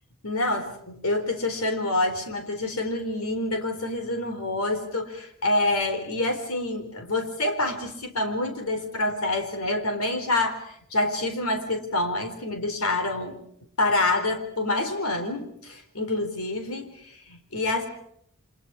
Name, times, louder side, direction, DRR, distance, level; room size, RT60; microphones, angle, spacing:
voice 1, 0.2-13.4 13.8-17.9, left 2 dB, 70° left, 7 dB, 4.2 m, -27 dB
29.5 x 26.0 x 4.8 m, 0.70 s
head